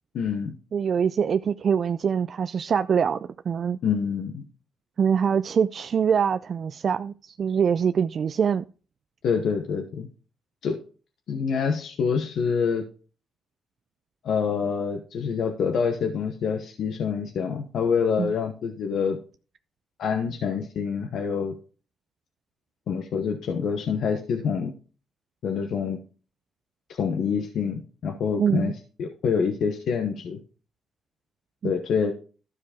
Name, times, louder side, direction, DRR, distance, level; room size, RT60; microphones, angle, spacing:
voice 1, 0.1-0.5 3.8-4.4 9.2-10.1 10.6-10.8 11.3-12.8 14.2-19.2 20.0-21.5 22.9-24.7 25.4-26.0 26.9-30.4 31.6-32.1, left 6 dB, 70° left, 1.0 m, -26 dB
voice 2, 0.7-3.8 5.0-8.6 18.2-18.3 28.4-28.7 31.6-31.7, right 7 dB, 50° right, 0.3 m, -24 dB
12.5 x 4.7 x 4.3 m
cardioid pair, 90°, 0 cm